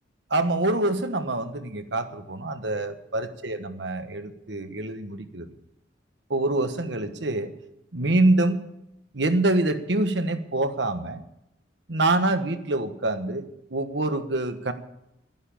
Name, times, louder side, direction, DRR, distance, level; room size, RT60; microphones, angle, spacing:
voice 1, 0.3-5.5 6.3-7.5 7.9-8.6 9.1-11.2 11.9-14.7, right 2 dB, 75° right, 9 dB, 1.3 m, -25 dB
11.5 x 11.0 x 8.7 m, 0.84 s
head